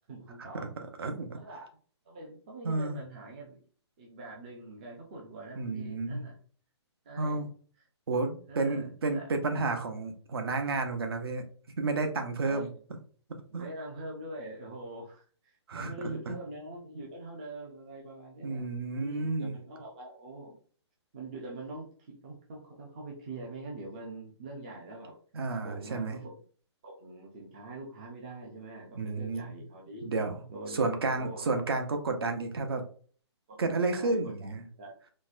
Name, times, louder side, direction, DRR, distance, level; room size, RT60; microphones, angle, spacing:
voice 1, 0.1-0.7 1.3-1.7 2.1-3.6 4.0-6.4 7.0-7.5 8.5-9.3 12.4-12.7 13.5-20.6 21.1-25.2 25.6-26.4 26.8-30.0 30.5-31.6 33.5-33.6 33.9-34.5 34.8-35.0, right 2 dB, 15° right, -1 dB, 0.4 m, -44 dB
voice 2, 1.0-1.4 2.6-3.0 5.6-6.3 7.2-7.5 8.1-11.4 11.8-12.7 13.5-13.7 15.7-16.3 18.4-19.6 25.3-26.2 28.9-29.6 30.0-32.8 33.6-34.7, right 3 dB, 55° right, 6 dB, 0.7 m, -31 dB
4.0 x 2.1 x 2.5 m, 0.44 s
hypercardioid pair, 170°, 15 cm